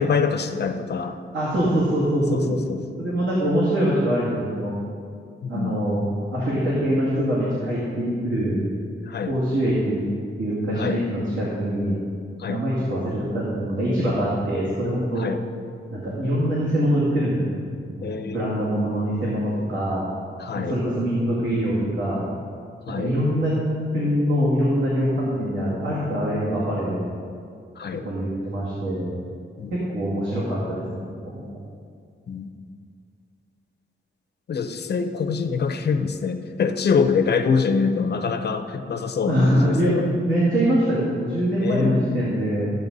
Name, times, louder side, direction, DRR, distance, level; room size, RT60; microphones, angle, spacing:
voice 1, 0.0-1.2 2.3-2.8 5.4-5.7 9.1-9.3 10.8-11.0 12.4-12.6 15.2-15.4 18.0-18.6 20.4-20.8 22.9-23.1 27.8-28.0 29.6-29.7 32.3-32.5 34.5-40.0 41.6-42.3, left 5 dB, 50° left, 7 dB, 0.6 m, -25 dB
voice 2, 1.3-2.6 3.0-4.7 5.5-6.0 6.3-8.6 9.3-10.1 10.4-12.0 12.5-15.3 15.9-20.1 20.5-22.3 22.9-23.6 23.9-27.1 28.0-29.2 29.7-31.6 39.3-42.7, equal, 70° right, -7 dB, 2.3 m, -24 dB
14.0 x 7.9 x 4.0 m, 2.3 s
wide cardioid pair, 175°, 21 cm